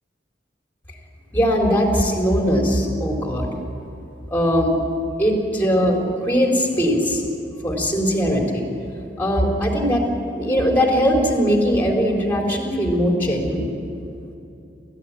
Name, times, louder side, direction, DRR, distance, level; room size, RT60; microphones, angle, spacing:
voice 1, 1.3-3.5 4.3-4.7 5.2-7.2 7.6-8.7 9.2-10.1 10.3-13.7, equal, 10° left, 0 dB, 4.0 m, -20 dB
28.5 x 15.0 x 9.9 m, 2.7 s
head